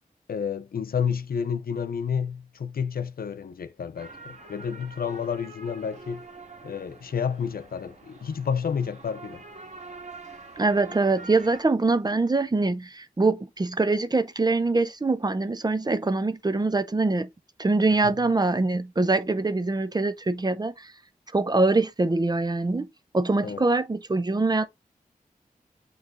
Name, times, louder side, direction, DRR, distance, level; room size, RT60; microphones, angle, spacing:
voice 1, 0.3-6.2 6.6-9.4 18.0-18.1 23.4-23.7, left 7 dB, 85° left, 0.6 m, -30 dB
sound 1, 4.0-11.6, right 3 dB, 50° right, 1.7 m, -45 dB
voice 2, 10.6-17.3 17.6-20.9 21.3-24.7, right 3 dB, 25° right, 0.6 m, -24 dB
7.9 x 3.2 x 3.7 m
wide cardioid pair, 110°, 15 cm